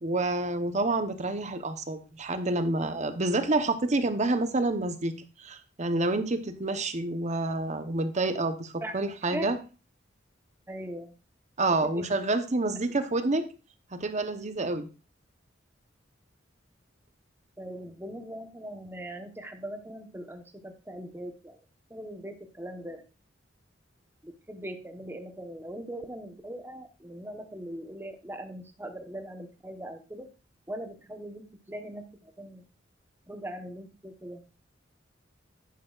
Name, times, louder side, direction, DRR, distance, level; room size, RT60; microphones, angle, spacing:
voice 1, 0.0-5.1 5.4-9.6 11.6-13.5 13.9-14.9, right 2 dB, 40° right, 9 dB, 0.9 m, -28 dB
voice 2, 10.7-11.1 11.9-12.1 17.6-21.6 21.9-23.0 24.2-30.3 30.7-32.6 33.3-34.4, right 1 dB, 10° right, 6 dB, 1.0 m, -40 dB
10.5 x 9.4 x 2.4 m, 0.32 s
head